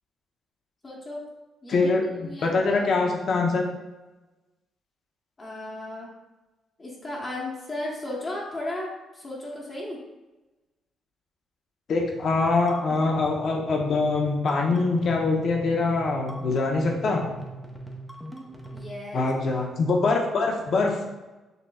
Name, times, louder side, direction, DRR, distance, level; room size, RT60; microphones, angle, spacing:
voice 1, 0.8-1.2 1.6-3.1 5.4-6.1 6.8-10.0 18.7-19.3, left 1 dB, 30° left, -4 dB, 1.1 m, -35 dB
voice 2, 1.7-3.6 11.9-17.3 19.1-21.0, left 3 dB, 60° left, 1 dB, 0.8 m, -24 dB
sound 1, 11.9-19.0, right 1 dB, 5° left, 0.8 m, -42 dB
6.7 x 3.0 x 2.3 m, 1.1 s
cardioid pair, 90°, 0 cm